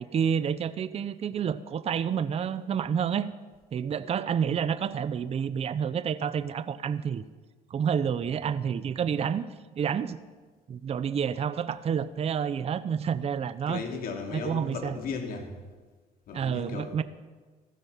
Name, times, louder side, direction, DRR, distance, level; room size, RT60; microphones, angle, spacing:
voice 1, 0.0-3.3 3.7-7.2 7.7-9.5 9.7-10.2 10.7-13.8 14.3-14.9 16.3-17.0, right 7 dB, 35° right, 14 dB, 0.6 m, -29 dB
voice 2, 13.7-15.5 16.3-17.0, left 5 dB, 60° left, 2 dB, 3.2 m, -36 dB
15.0 x 15.0 x 5.7 m, 1.3 s
cardioid pair, 110°, 17 cm